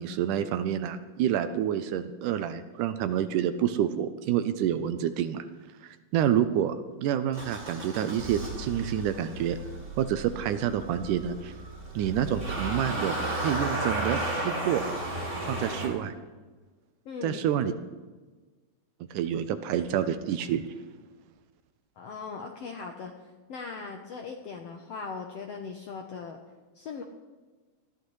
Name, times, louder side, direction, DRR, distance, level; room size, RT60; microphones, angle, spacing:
voice 1, 0.0-5.5 5.8-9.6 10.0-11.5 12.0-14.8 15.4-16.1 17.2-17.7 19.1-20.6, right 10 dB, 80° right, 10 dB, 2.0 m, -28 dB
Motor vehicle (road) / Engine starting, 7.3-15.9, right 1 dB, 15° right, 2.8 m, -34 dB
voice 2, 17.0-17.5 22.0-26.4 26.7-27.0, left 5 dB, 75° left, 3 dB, 1.5 m, -39 dB
20.0 x 14.0 x 3.2 m, 1.3 s
omnidirectional pair, 3.9 m